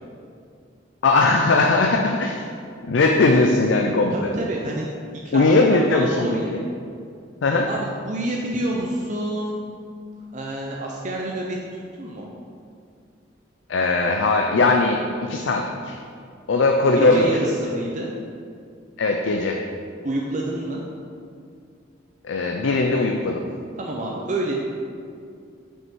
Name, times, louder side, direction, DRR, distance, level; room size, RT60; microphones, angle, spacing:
voice 1, 1.0-2.4 2.9-4.3 5.3-6.6 7.4-7.7 13.7-16.0 16.5-17.4 19.0-19.6 22.2-23.5, left 3 dB, 75° left, 3 dB, 0.5 m, -19 dB
voice 2, 4.1-4.9 5.2-6.5 7.7-9.6 10.3-11.6 12.0-12.3 16.9-18.1 20.0-20.8 23.8-24.5, right 1 dB, 40° right, -2 dB, 0.6 m, -28 dB
5.9 x 5.5 x 4.6 m, 2.3 s
head